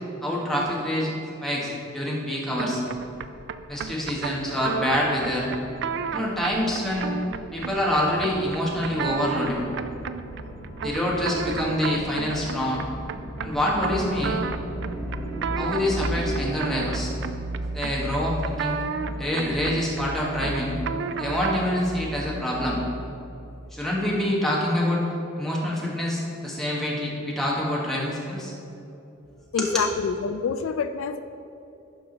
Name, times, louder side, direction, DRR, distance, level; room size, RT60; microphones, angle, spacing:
voice 1, 0.2-1.1 1.4-2.8 3.7-5.5 6.1-7.1 7.5-9.6 10.8-12.8 13.4-14.4 15.6-17.1 17.7-18.8 19.2-20.8 21.2-22.8 23.7-25.0 25.4-28.5 29.6-29.9, left 1 dB, ahead, -5 dB, 1.3 m, -26 dB
sound 1, 2.6-21.8, right 6 dB, 55° right, 0.3 m, -33 dB
sound 2, 2.8-16.5, equal, 30° left, 1.2 m, -40 dB
sound 3, 13.9-22.9, right 1 dB, 80° right, 1.5 m, -34 dB
voice 2, 29.5-31.2, left 6 dB, 75° left, 10 dB, 0.3 m, -27 dB
12.0 x 4.9 x 3.9 m, 2.8 s
head